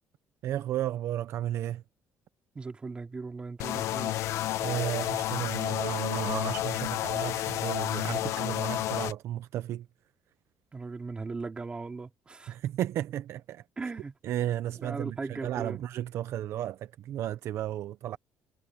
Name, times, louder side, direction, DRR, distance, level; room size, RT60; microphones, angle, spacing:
voice 1, 0.4-1.8 4.6-9.8 12.5-13.6 14.2-18.2, right 12 dB, 60° right, 0.6 m, -33 dB
voice 2, 2.5-4.2 8.2-8.4 10.7-12.6 13.8-14.2 14.8-15.8, right 4 dB, 20° right, 2.4 m, -38 dB
sound 1, 3.6-9.1, left 13 dB, 70° left, 1.0 m, -31 dB
cardioid pair, 150°, 5 cm